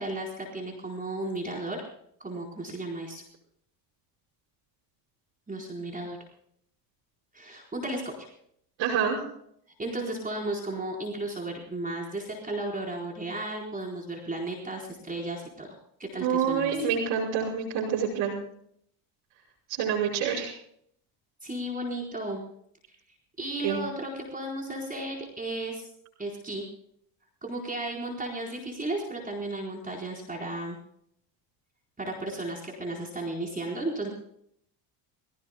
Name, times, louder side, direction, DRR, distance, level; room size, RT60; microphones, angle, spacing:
voice 1, 0.0-1.8 2.2-3.2 5.5-6.2 7.3-8.1 9.8-15.7 16.0-16.9 21.4-22.4 23.4-25.8 26.2-26.6 27.4-30.8 32.0-34.1, right 2 dB, 15° right, -1 dB, 4.3 m, -34 dB
voice 2, 8.8-9.2 16.2-18.4 19.7-20.5 23.6-23.8, right 7 dB, 70° right, -6 dB, 5.5 m, -27 dB
24.5 x 17.0 x 2.2 m, 0.69 s
supercardioid pair, 95°, 48 cm